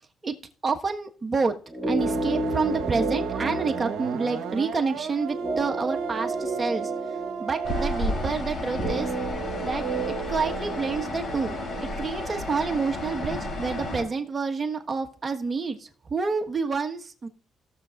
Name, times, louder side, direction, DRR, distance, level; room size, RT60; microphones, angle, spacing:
voice 1, 0.6-1.6 1.9-6.9 7.4-9.1 9.6-11.6 12.0-17.3, right 4 dB, 30° right, 4 dB, 1.4 m, -28 dB
sound 1, 1.7-13.8 14.1-14.2, right 2 dB, 5° right, 2.2 m, -33 dB
sound 2, 2.0-8.1, right 7 dB, 85° right, 1.0 m, -34 dB
sound 3, 7.6-14.0, left 1 dB, 50° left, 5.4 m, -32 dB
17.5 x 7.0 x 2.5 m, 0.42 s
cardioid pair, 90°, 0 cm